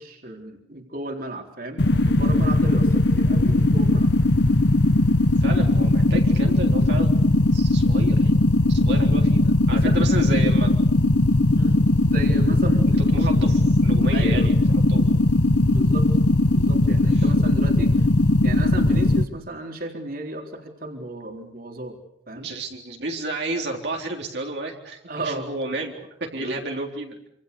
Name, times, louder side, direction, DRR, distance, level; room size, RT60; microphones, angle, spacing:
voice 1, 0.0-4.1 9.7-10.0 11.6-11.8 12.1-13.4 14.0-14.5 15.6-16.1 16.5-18.1 18.4-22.0 22.3-22.5 25.1-25.5 26.3-26.6, right 1 dB, 55° right, 3 dB, 4.0 m, -34 dB
sound 1, 1.8-19.2, left 2 dB, 70° left, 1.1 m, -19 dB
voice 2, 5.4-8.3 8.7-10.7 12.9-15.2 17.1-17.3 22.4-27.2, right 2 dB, 70° right, 0 dB, 3.9 m, -32 dB
27.0 x 27.0 x 6.9 m, 0.75 s
head